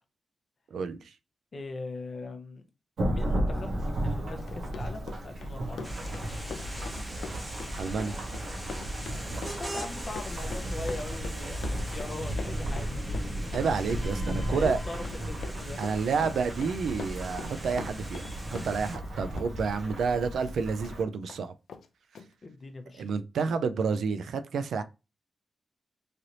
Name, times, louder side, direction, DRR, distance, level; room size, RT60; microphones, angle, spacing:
voice 1, 0.7-1.1 7.8-8.2 13.5-14.8 15.8-21.5 23.0-24.8, right 5 dB, 85° right, 0.3 m, -29 dB
voice 2, 1.5-2.6 3.1-3.8 4.0-6.0 9.2-13.0 13.4-13.6 14.2-15.8 22.4-23.1, left 2 dB, 35° left, 0.6 m, -41 dB
Thunderstorm / Rain, 3.0-21.0, right 1 dB, 60° right, 0.9 m, -35 dB
Run, 4.3-19.1 19.4-21.0 21.3-21.4 21.7-21.9 22.2-22.3, left 5 dB, 75° left, 0.4 m, -43 dB
sound 1, 5.8-19.0, right 1 dB, 15° right, 0.7 m, -41 dB
3.2 x 2.6 x 2.8 m
wide cardioid pair, 170°, 0 cm